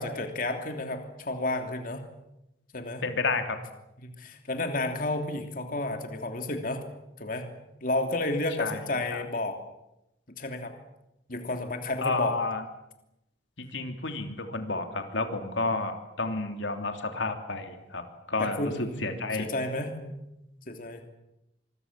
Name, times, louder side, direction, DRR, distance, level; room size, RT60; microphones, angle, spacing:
voice 1, 0.0-2.0 2.7-3.0 4.0-6.8 7.2-7.5 7.8-9.6 10.4-10.7 11.3-12.4 18.4-20.2 20.7-21.0, left 2 dB, 50° left, 5 dB, 3.0 m, -31 dB
voice 2, 3.0-3.6 8.6-8.8 9.1-9.2 12.0-12.6 13.6-18.0 18.3-19.5, left 3 dB, 85° left, 6 dB, 3.2 m, -30 dB
26.5 x 22.5 x 7.5 m, 0.87 s
head